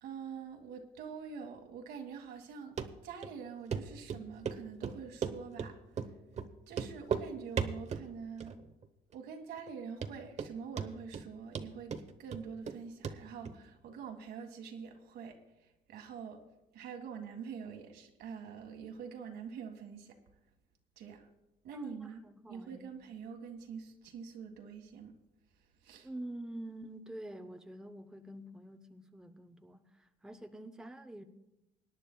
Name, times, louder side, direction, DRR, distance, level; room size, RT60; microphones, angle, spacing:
voice 1, 0.0-2.8 3.0-6.1 6.7-8.6 9.1-11.9 12.2-16.4 16.7-20.2 21.0-21.3 21.6-22.2 22.5-25.1 25.8-26.1, right 6 dB, 75° right, 4 dB, 1.8 m, -45 dB
Run, 2.8-2.9 3.2-3.3 3.7-3.8 4.1-4.6 4.8-5.7 6.0-6.1 6.4-6.5 6.7-7.3 7.6-8.1 8.4-8.9 9.1-9.2 9.7-9.8 10.0-10.5 10.8-11.3 11.6-12.8 13.0-13.2 13.5-13.6, right 6 dB, 40° right, 0.9 m, -36 dB
voice 2, 21.7-23.0 26.0-31.2, right 1 dB, 5° right, 5 dB, 0.7 m, -47 dB
25.0 x 10.0 x 2.3 m, 0.95 s
cardioid pair, 110°, 17 cm